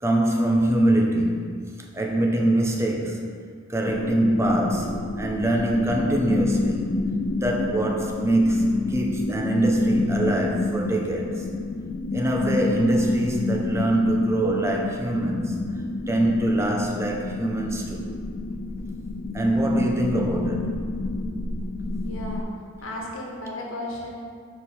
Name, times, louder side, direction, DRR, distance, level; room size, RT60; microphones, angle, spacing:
voice 1, 0.0-1.4 1.9-3.2 3.7-7.0 7.4-11.5 12.1-15.6 16.1-18.1 19.3-20.9, right 1 dB, 15° right, 1 dB, 0.6 m, -23 dB
sound 1, 3.9-22.4, left 3 dB, 50° left, 0.4 m, -29 dB
voice 2, 22.0-22.5 22.8-24.1, left 1 dB, 80° left, -2 dB, 1.3 m, -34 dB
7.1 x 4.5 x 4.3 m, 2.1 s
head